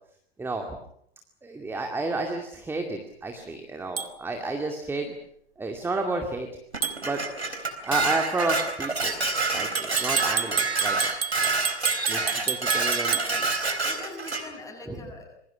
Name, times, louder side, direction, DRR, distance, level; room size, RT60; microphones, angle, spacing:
voice 1, 0.4-0.8 1.4-5.1 5.6-6.5 7.0-7.3 7.8-9.2 9.5-11.1 12.1-13.2 14.9-15.0, right 3 dB, 5° right, 3 dB, 2.3 m, -31 dB
sound 1, 4.0-4.1 6.8-7.0 9.7-13.3, right 7 dB, 65° right, 2.2 m, -29 dB
Dishes pots and pans, 6.7-14.4, right 3 dB, 80° right, 4.1 m, -27 dB
voice 2, 12.0-12.4 12.7-13.4 13.8-15.3, left 2 dB, 10° left, 2 dB, 7.5 m, -43 dB
27.0 x 22.5 x 6.2 m, 0.72 s
figure-of-eight pair, 105°, 32 cm